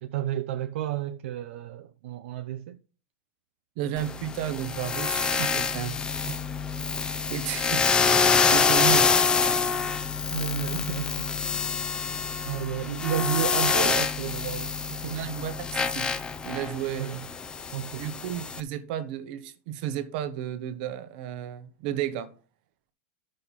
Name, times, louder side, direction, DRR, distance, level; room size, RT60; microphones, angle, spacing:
voice 1, 0.0-2.8 5.4-5.5 10.3-11.3 12.4-15.4 16.9-17.2 17.7-18.1, right 12 dB, 65° right, 0.7 m, -32 dB
voice 2, 3.8-6.0 6.3-6.4 7.3-7.8 8.5-9.1 15.1-16.1 16.4-17.2 17.9-22.3, right 11 dB, 45° right, 1.1 m, -33 dB
sound 1, 4.0-18.6, left 5 dB, 10° left, 0.7 m, -26 dB
12.0 x 6.4 x 4.1 m
supercardioid pair, 160°, 7 cm